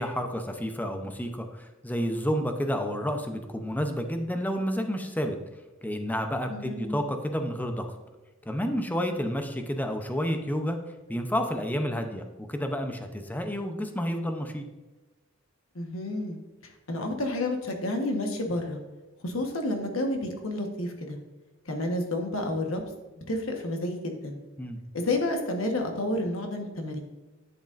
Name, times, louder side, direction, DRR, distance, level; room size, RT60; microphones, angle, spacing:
voice 1, 0.0-5.4 5.8-7.9 8.4-10.8 11.1-14.6 24.6-24.8, equal, 10° left, 5 dB, 0.7 m, -30 dB
voice 2, 6.5-6.9 15.7-16.4 16.9-18.8 19.2-21.2 21.7-22.8 23.3-24.4 24.9-27.0, left 1 dB, 75° left, 3 dB, 1.3 m, -30 dB
10.5 x 8.0 x 2.6 m, 1.2 s
head